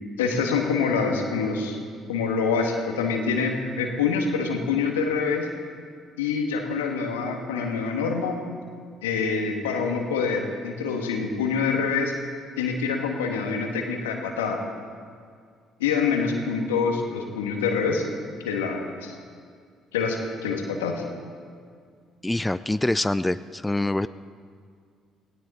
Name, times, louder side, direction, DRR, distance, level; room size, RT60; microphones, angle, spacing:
voice 1, 0.2-1.8 2.1-5.5 6.2-8.4 9.0-12.1 12.6-14.6 15.8-18.1 18.4-19.2 19.9-21.0, left 5 dB, 85° left, 2 dB, 1.7 m, -26 dB
voice 2, 22.2-24.1, left 1 dB, 10° left, 14 dB, 0.4 m, -25 dB
18.0 x 17.5 x 4.3 m, 2.2 s
hypercardioid pair, 50°, 0 cm